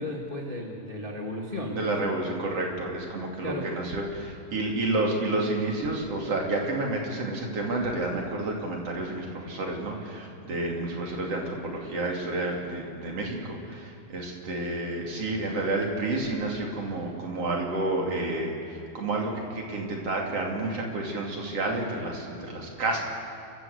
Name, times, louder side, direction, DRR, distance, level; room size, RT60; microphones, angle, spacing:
voice 1, 0.0-1.8 3.4-3.7, left 1 dB, 25° left, -1 dB, 1.3 m, -34 dB
voice 2, 1.8-23.1, right 2 dB, 45° right, -1 dB, 3.3 m, -30 dB
29.5 x 14.5 x 8.1 m, 2.4 s
omnidirectional pair, 4.4 m